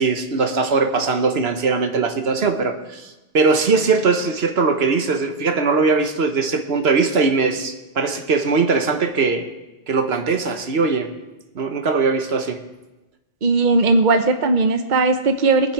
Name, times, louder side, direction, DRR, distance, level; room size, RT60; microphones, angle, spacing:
voice 1, 0.0-9.5 9.9-11.2 11.5-12.6, right 4 dB, 85° right, 6 dB, 1.4 m, -20 dB
voice 2, 13.4-15.7, right 3 dB, 50° right, 7 dB, 1.0 m, -17 dB
22.5 x 7.8 x 4.7 m, 1.1 s
omnidirectional pair, 1.0 m